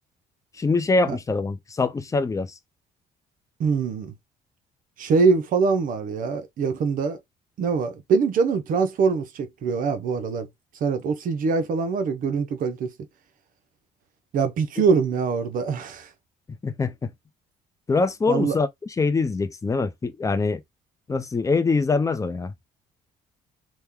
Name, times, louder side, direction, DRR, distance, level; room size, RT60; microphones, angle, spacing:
voice 1, 0.5-2.5 16.6-17.1 17.9-20.6 21.1-22.5, left 3 dB, 20° left, 0.5 m, -24 dB
voice 2, 3.6-4.1 5.0-7.2 7.6-10.5 10.8-12.9 14.3-16.1 18.3-18.5, right 5 dB, 55° right, 0.6 m, -23 dB
2.9 x 2.1 x 3.6 m
cardioid pair, 110°, 17 cm